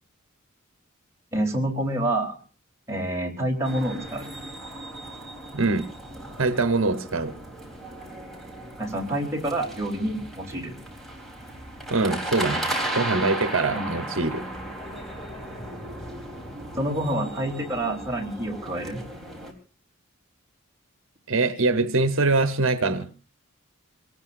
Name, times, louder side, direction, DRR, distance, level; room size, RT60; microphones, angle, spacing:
voice 1, 1.3-2.4 2.9-4.3 8.8-10.7 13.7-14.0 16.8-19.0, right 1 dB, 15° right, 3.9 m, -28 dB
sound 1, 3.6-19.5, right 1 dB, ahead, 3.8 m, -36 dB
voice 2, 5.5-5.9 6.4-7.3 11.9-14.4 21.3-23.1, right 3 dB, 65° right, 1.1 m, -23 dB
26.5 x 18.5 x 2.6 m
head